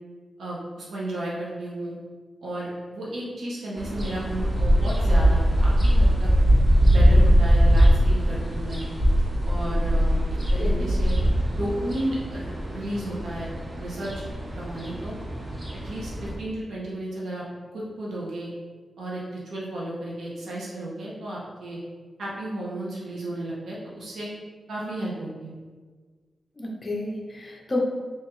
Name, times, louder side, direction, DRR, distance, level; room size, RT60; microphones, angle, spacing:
voice 1, 0.4-2.0 2.4-6.3 6.9-8.8 9.4-10.2 10.5-11.2 11.5-12.4 12.7-13.5 13.8-14.2 14.6-15.2 15.8-17.4 17.7-18.5 19.0-21.8 22.2-24.3 24.7-25.5, right 1 dB, 80° right, -5 dB, 0.7 m, -33 dB
sound 1, 3.8-16.3, equal, 25° right, 0.5 m, -21 dB
voice 2, 26.6-27.8, left 2 dB, 25° left, -2 dB, 0.6 m, -31 dB
3.4 x 3.0 x 3.0 m, 1.5 s
wide cardioid pair, 175°, 0 cm